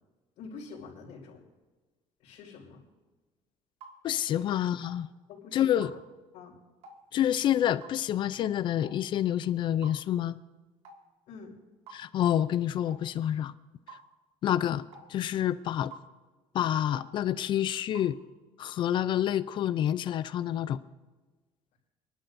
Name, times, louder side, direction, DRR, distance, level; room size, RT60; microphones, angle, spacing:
voice 1, 0.4-1.4 2.2-2.8 4.3-4.5 5.3-5.9 6.3-6.5 11.3-11.5, left 5 dB, 75° left, -8 dB, 4.5 m, -46 dB
sound 1, 3.8-4.0 4.8-5.0 5.8-6.0 6.8-7.0 7.8-8.0 8.8-9.0 9.8-10.0 10.8-11.0 11.9-12.1 12.9-13.0 13.9-14.0 14.9-15.1 15.9-16.1 17.0-17.1 17.9-18.1, right 3 dB, 60° right, 2.1 m, -48 dB
voice 2, 4.0-5.1 5.5-6.0 7.1-10.4 11.9-13.5 14.4-14.8 15.1-15.9 16.5-18.2 18.6-20.8, left 11 dB, 40° left, 15 dB, 0.4 m, -28 dB
26.0 x 12.0 x 2.6 m, 1.3 s
cardioid pair, 175°, 12 cm